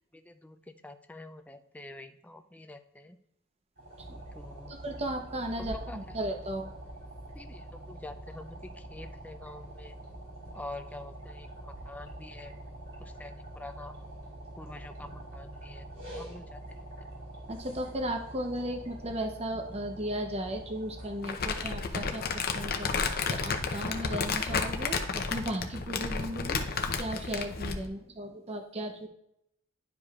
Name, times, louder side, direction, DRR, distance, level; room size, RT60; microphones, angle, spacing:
voice 1, 0.1-3.2 4.3-4.8 5.6-6.2 7.3-9.9 10.5-12.5 13.0-14.0 14.6-16.6, left 2 dB, 5° left, 8 dB, 0.4 m, -46 dB
sound 1, 3.8-21.3, right 1 dB, 70° right, 2.7 m, -45 dB
voice 2, 4.7-6.7 17.5-29.1, right 1 dB, 30° right, 4 dB, 0.8 m, -36 dB
Crumpling crinkling, 21.2-27.9, left 4 dB, 45° left, 0.6 m, -32 dB
10.5 x 4.9 x 2.4 m, 0.76 s
head